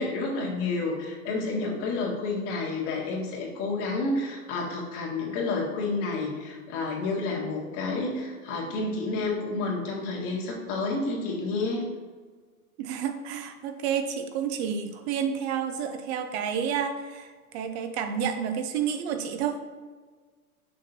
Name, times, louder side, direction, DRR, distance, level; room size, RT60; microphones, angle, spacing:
voice 1, 0.0-11.8, left 3 dB, 50° left, -2 dB, 1.8 m, -30 dB
voice 2, 12.8-19.6, right 7 dB, 50° right, 7 dB, 0.6 m, -30 dB
6.3 x 5.8 x 2.8 m, 1.5 s
hypercardioid pair, 115°, 44 cm